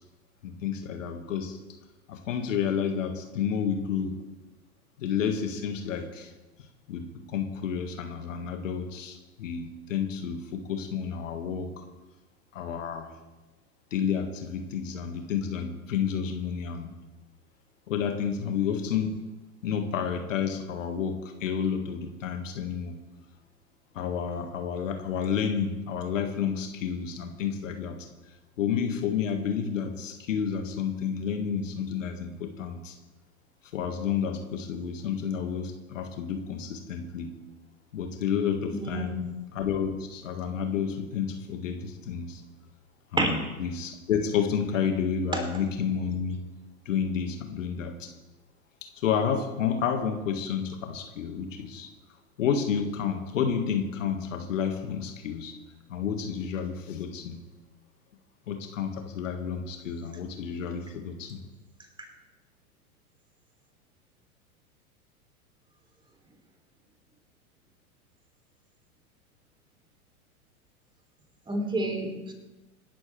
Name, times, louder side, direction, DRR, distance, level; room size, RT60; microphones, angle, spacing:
voice 1, 0.4-1.6 2.1-4.2 5.0-6.3 6.9-11.8 12.5-13.1 13.9-16.9 17.9-19.2 19.6-23.0 23.9-28.1 28.6-32.9 33.7-37.3 37.9-42.4 43.1-46.4 46.9-48.1 49.0-51.9 52.4-55.5 55.9-57.4 58.5-61.4, left 7 dB, 60° left, 5 dB, 1.9 m, -30 dB
voice 2, 38.7-39.2 43.2-43.3 45.3-45.4 71.5-72.3, right 1 dB, 10° right, 4 dB, 3.2 m, -28 dB
26.0 x 12.5 x 3.4 m, 1.1 s
figure-of-eight pair, 95°, 44 cm